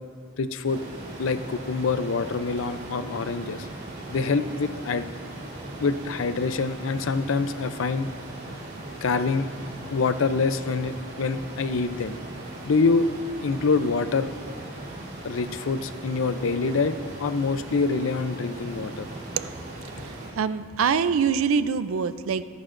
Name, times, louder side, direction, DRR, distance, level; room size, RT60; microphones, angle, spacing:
voice 1, 0.4-0.8 1.2-3.7 4.1-5.1 5.8-8.1 9.0-9.5 9.9-12.2 12.6-13.1 13.4-14.3 15.2-19.1, left 4 dB, 70° left, 11 dB, 0.5 m, -25 dB
sound 1, 0.6-20.3, right 1 dB, 45° right, 3.3 m, -39 dB
voice 2, 19.9-22.4, right 6 dB, 90° right, 13 dB, 0.5 m, -25 dB
23.5 x 11.0 x 2.6 m, 2.1 s
head